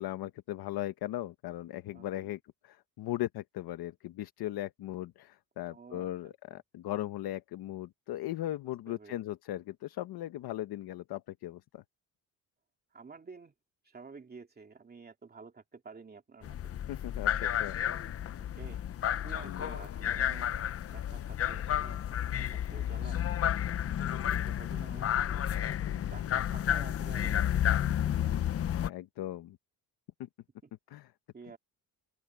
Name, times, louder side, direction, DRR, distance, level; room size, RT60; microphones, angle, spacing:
voice 1, 0.0-11.8 16.9-17.8 19.4-19.8 25.9-26.3 28.8-29.6 30.9-31.1, left 14 dB, 80° left, 1.1 m, -38 dB
voice 2, 1.9-2.3 5.6-6.6 8.9-9.2 12.9-13.5 13.8-16.7 18.4-18.8 19.2-20.6 20.9-23.2 23.9-25.4 26.1-28.2 30.6-30.7 31.3-31.6, right 4 dB, 25° right, 2.7 m, -51 dB
sound 1, 16.4-28.9, left 10 dB, 40° left, 0.6 m, -31 dB
open air
cardioid pair, 140°, 37 cm